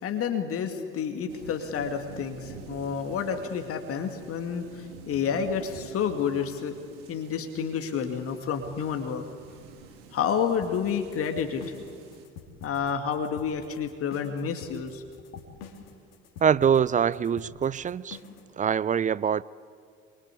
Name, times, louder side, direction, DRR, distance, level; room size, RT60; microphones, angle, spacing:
voice 1, 0.0-6.8 7.1-9.2 10.1-11.6 12.6-15.0, left 7 dB, 45° left, 2.4 m, -29 dB
sound 1, 1.3-12.3, right 6 dB, 65° right, 2.8 m, -47 dB
sound 2, 10.6-18.5, left 6 dB, 65° left, 3.2 m, -46 dB
voice 2, 16.4-18.2 18.6-19.4, right 7 dB, 25° right, 0.6 m, -24 dB
26.0 x 23.5 x 8.5 m
figure-of-eight pair, 60°, 31 cm